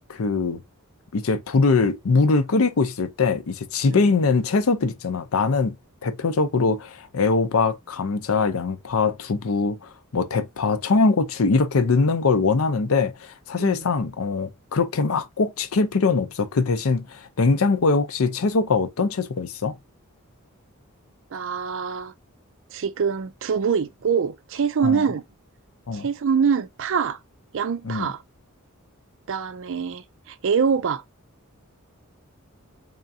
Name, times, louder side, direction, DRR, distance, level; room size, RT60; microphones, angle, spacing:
voice 1, 0.1-0.6 1.1-5.8 6.0-9.8 10.1-19.8 24.8-25.0 25.9-26.1 27.8-28.1, left 4 dB, 70° left, 0.6 m, -22 dB
voice 2, 21.3-22.1 22.7-25.2 25.9-27.2 27.5-28.2 29.3-31.0, right 6 dB, 60° right, 0.4 m, -24 dB
3.7 x 3.5 x 2.6 m
head